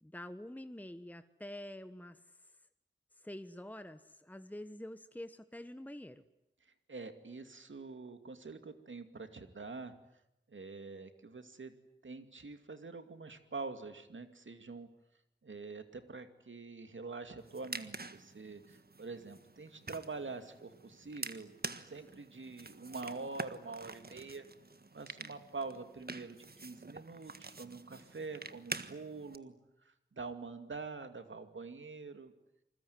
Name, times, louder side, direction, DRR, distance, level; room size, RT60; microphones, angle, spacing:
voice 1, 0.0-2.2 3.2-6.2 21.9-22.0, left 1 dB, 10° left, 10 dB, 1.3 m, -47 dB
voice 2, 6.9-9.9 10.5-11.7 12.0-14.9 15.4-21.5 21.9-24.4 24.9-29.5 29.8-32.3, right 4 dB, 85° right, 8 dB, 2.4 m, -45 dB
sound 1, 17.4-29.4, right 3 dB, 55° right, 1.6 m, -47 dB
27.5 x 21.5 x 9.6 m, 0.85 s
wide cardioid pair, 45°, 19 cm